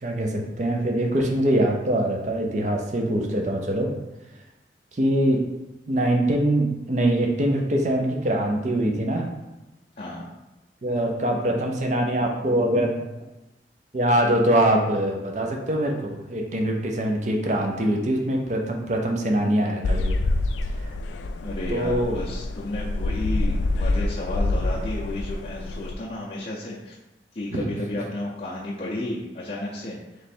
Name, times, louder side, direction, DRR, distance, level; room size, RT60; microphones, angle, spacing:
voice 1, 0.0-3.9 5.0-5.4 5.9-9.3 10.8-13.0 13.9-20.2 21.7-22.2 27.5-27.7, right 1 dB, 40° right, 2 dB, 0.5 m, -23 dB
sound 1, 19.8-25.9, left 2 dB, 90° left, 0.3 m, -26 dB
voice 2, 21.4-27.0 27.3-30.0, left 1 dB, 35° left, -6 dB, 0.5 m, -32 dB
3.2 x 3.1 x 4.2 m, 1.0 s
head